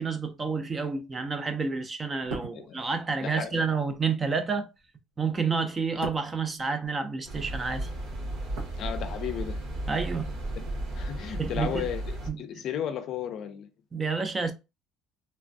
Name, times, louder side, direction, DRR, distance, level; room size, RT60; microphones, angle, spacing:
voice 1, 0.0-4.7 5.2-7.9 9.9-10.4 11.4-11.9 12.3-12.6 13.9-14.5, right 5 dB, 20° right, 0.4 m, -29 dB
sound 1, 2.1-7.4 7.7-9.5 9.8-10.0, right 4 dB, 85° right, 0.7 m, -43 dB
voice 2, 3.2-3.7 8.7-9.6 10.6-12.0 12.4-13.7, left 9 dB, 50° left, 0.5 m, -34 dB
sound 2, 7.2-12.3, right 1 dB, 65° right, 1.2 m, -34 dB
3.2 x 2.2 x 2.6 m
cardioid pair, 140°, 0 cm